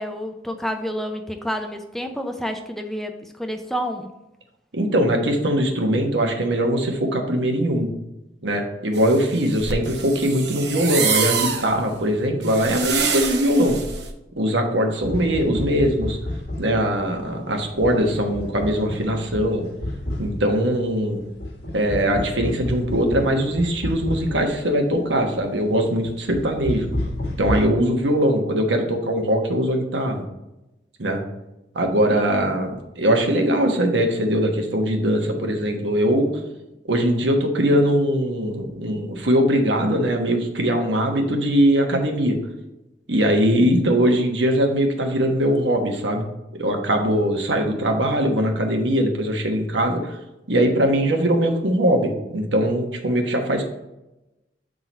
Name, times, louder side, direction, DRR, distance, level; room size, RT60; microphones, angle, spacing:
voice 1, 0.0-4.1 32.1-32.4, equal, ahead, 5 dB, 0.4 m, -29 dB
voice 2, 4.7-7.9 8.4-13.8 14.4-16.2 16.6-19.6 20.2-21.2 21.7-26.9 27.4-30.2 31.0-31.2 31.7-36.3 36.9-42.4 43.1-46.2 46.5-50.2 50.5-53.6, equal, 85° right, 3 dB, 1.2 m, -21 dB
sound 1, 8.9-14.1, right 6 dB, 65° right, 0.9 m, -26 dB
sound 2, 15.0-27.7, left 1 dB, 60° left, 1.5 m, -31 dB
7.5 x 3.8 x 4.1 m, 0.95 s
head